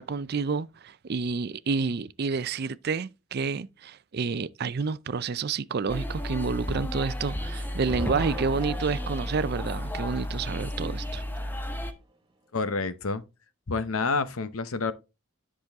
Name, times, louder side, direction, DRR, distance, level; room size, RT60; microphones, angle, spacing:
voice 1, 0.0-11.2, right 4 dB, 45° right, 0.4 m, -29 dB
sound 1, 5.9-11.9, left 1 dB, 10° left, 0.9 m, -33 dB
sound 2, 7.9-12.0, right 1 dB, 20° right, 1.1 m, -44 dB
voice 2, 12.5-13.2 13.7-14.9, left 4 dB, 75° left, 0.8 m, -28 dB
10.5 x 6.1 x 3.5 m
head